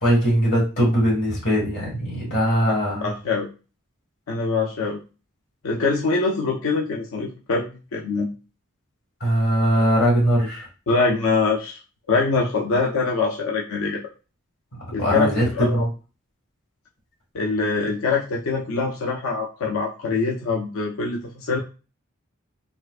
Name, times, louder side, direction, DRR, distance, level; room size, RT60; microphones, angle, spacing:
voice 1, 0.0-3.1 9.2-10.7 14.7-15.9, equal, 50° left, -3 dB, 1.7 m, -21 dB
voice 2, 3.0-3.5 4.3-5.0 5.6-8.3 10.9-11.8 12.1-14.0 14.9-15.8 17.3-21.6, left 4 dB, 85° left, -1 dB, 0.5 m, -24 dB
4.3 x 2.5 x 2.4 m, 0.33 s
head